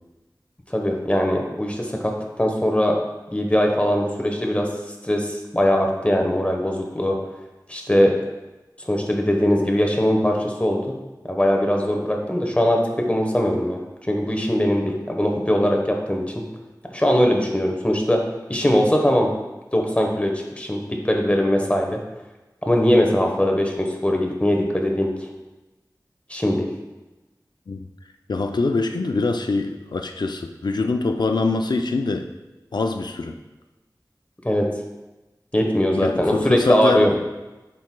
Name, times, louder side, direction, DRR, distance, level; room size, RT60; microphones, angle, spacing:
voice 1, 0.7-2.1 2.4-3.0 3.3-4.7 5.0-7.2 7.7-8.1 8.8-10.9 11.2-13.8 14.1-16.4 16.9-18.2 18.5-19.3 19.7-22.0 22.6-25.1 26.3-26.7 34.4-34.6 35.5-37.1, equal, 20° left, 1 dB, 1.0 m, -21 dB
voice 2, 28.3-32.3 32.7-33.4 36.0-37.1, left 3 dB, 85° left, 5 dB, 0.4 m, -24 dB
7.7 x 5.8 x 2.2 m, 1.1 s
wide cardioid pair, 55°, 7 cm